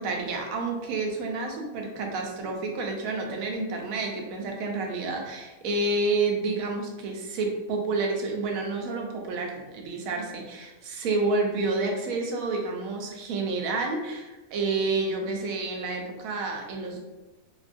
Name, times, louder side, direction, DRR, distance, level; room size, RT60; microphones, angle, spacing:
voice 1, 0.0-17.0, right 3 dB, 90° right, 1 dB, 1.0 m, -29 dB
2.8 x 2.2 x 2.4 m, 1.1 s
omnidirectional pair, 1.4 m